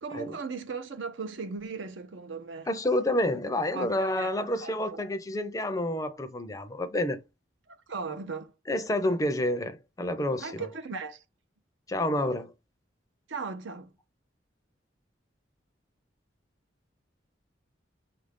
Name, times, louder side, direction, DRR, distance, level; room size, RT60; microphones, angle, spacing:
voice 1, 0.0-2.7 3.7-4.3 4.6-5.0 7.7-8.5 10.4-11.2 13.3-14.0, right 4 dB, 85° right, 0.7 m, -37 dB
voice 2, 2.7-7.2 8.7-10.7 11.9-12.5, left 1 dB, 20° left, 0.4 m, -29 dB
5.6 x 2.5 x 3.5 m
head